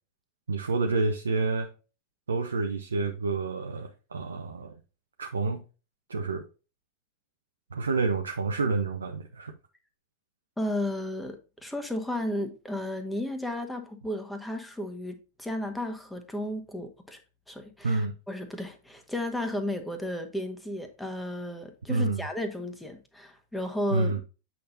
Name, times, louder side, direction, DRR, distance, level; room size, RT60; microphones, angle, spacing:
voice 1, 0.5-1.7 2.3-4.8 5.2-5.6 6.1-6.4 7.7-9.5 17.8-18.1 21.9-22.2 23.9-24.2, right 3 dB, 70° right, 0.7 m, -28 dB
voice 2, 10.6-17.2 17.5-24.1, left 1 dB, 5° left, 1.4 m, -34 dB
8.4 x 5.8 x 2.7 m
figure-of-eight pair, 90°, 0 cm